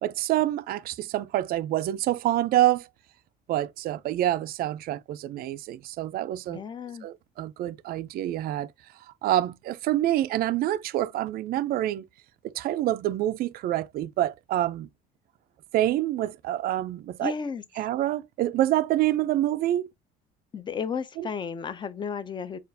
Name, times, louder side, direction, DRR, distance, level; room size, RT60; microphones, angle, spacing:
voice 1, 0.0-2.9 3.5-6.6 7.0-8.7 9.2-12.1 12.4-14.9 15.7-17.3 17.8-19.9 21.2-21.3, right 14 dB, 50° right, 0.4 m, -27 dB
voice 2, 6.5-7.1 17.2-17.6 20.5-22.6, left 6 dB, 25° left, 0.5 m, -33 dB
6.6 x 2.4 x 2.6 m
cardioid pair, 130°, 19 cm